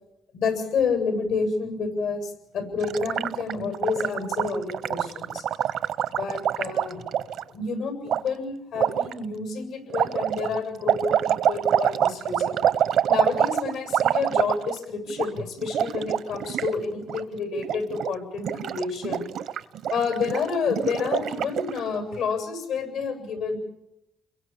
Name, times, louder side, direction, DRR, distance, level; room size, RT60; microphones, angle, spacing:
voice 1, 0.3-5.5 6.2-7.0 7.5-12.6 13.1-19.3 19.9-23.6, left 5 dB, 85° left, 6 dB, 7.8 m, -29 dB
Gurgling, 2.8-7.4 8.1-8.2 8.7-9.1 9.9-14.8 15.1-15.3 15.6-16.7 17.0-17.2 17.6-18.1 18.4-21.8, right 9 dB, 75° right, 0.9 m, -26 dB
29.5 x 22.5 x 7.5 m, 0.87 s
cardioid pair, 90°, 0 cm